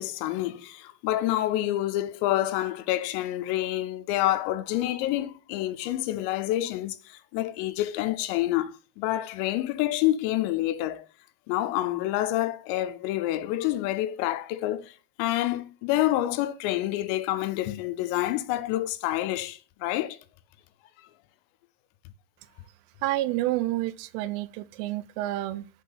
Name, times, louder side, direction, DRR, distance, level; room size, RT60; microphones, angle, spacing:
voice 1, 0.0-11.1 11.5-20.2, left 14 dB, 85° left, 2.8 m, -28 dB
voice 2, 23.0-25.7, right 16 dB, 85° right, 2.6 m, -29 dB
6.1 x 4.3 x 5.5 m
omnidirectional pair, 5.1 m